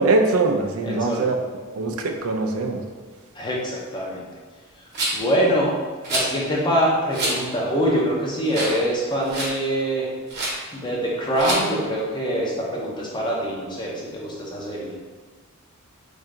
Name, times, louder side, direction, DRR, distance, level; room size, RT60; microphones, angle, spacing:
voice 1, 0.0-1.4 1.8-2.8, right 3 dB, 75° right, 3 dB, 0.4 m, -22 dB
voice 2, 0.8-1.2 3.3-4.2 5.1-5.7 6.1-10.1 10.7-14.9, equal, 20° left, -3 dB, 0.7 m, -24 dB
Rattle, 4.9-5.3 6.0-6.3 7.1-7.4 7.9-8.0 8.5-8.8 9.1-9.6 10.3-10.6 11.4-11.6, right 1 dB, 50° right, 1.0 m, -26 dB
3.3 x 2.7 x 3.7 m, 1.4 s
head